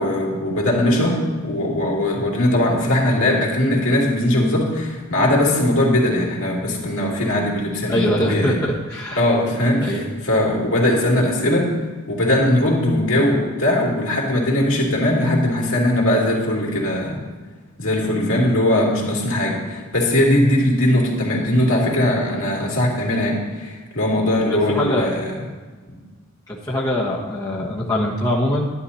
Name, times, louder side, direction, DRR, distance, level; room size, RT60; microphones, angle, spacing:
voice 1, 0.0-8.5 9.2-9.9 10.2-11.7 12.1-17.2 17.8-25.4, left 1 dB, 70° left, -3 dB, 3.0 m, -20 dB
voice 2, 7.9-9.2 9.8-10.0 24.5-25.1 26.5-28.7, left 1 dB, 15° left, -5 dB, 1.3 m, -23 dB
11.5 x 11.0 x 4.3 m, 1.4 s
head